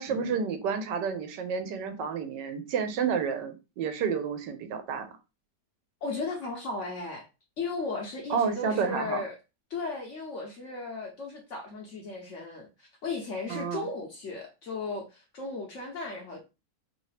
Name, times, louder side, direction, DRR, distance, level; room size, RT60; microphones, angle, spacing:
voice 1, 0.0-5.1 8.3-9.2 13.5-13.9, right 6 dB, 85° right, 1.3 m, -30 dB
voice 2, 6.0-7.3 7.6-9.4 9.7-16.4, left 3 dB, 60° left, 0.8 m, -36 dB
3.1 x 2.8 x 3.1 m
omnidirectional pair, 1.9 m